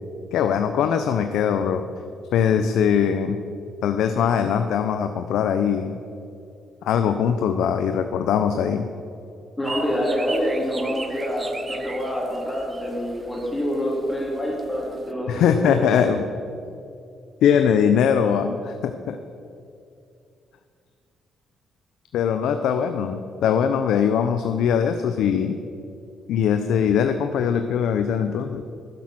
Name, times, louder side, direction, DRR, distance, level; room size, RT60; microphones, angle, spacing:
voice 1, 0.3-1.8 2.3-3.4 3.8-6.0 6.8-8.9 15.3-16.3 17.4-19.2 22.1-25.6 26.3-28.6, left 8 dB, 80° left, 8 dB, 0.6 m, -21 dB
voice 2, 9.6-15.8, equal, 15° left, -5 dB, 3.4 m, -26 dB
sound 1, 9.6-15.1, right 3 dB, 25° right, 0.8 m, -39 dB
12.0 x 9.4 x 5.9 m, 2.5 s
cardioid pair, 90°, 0 cm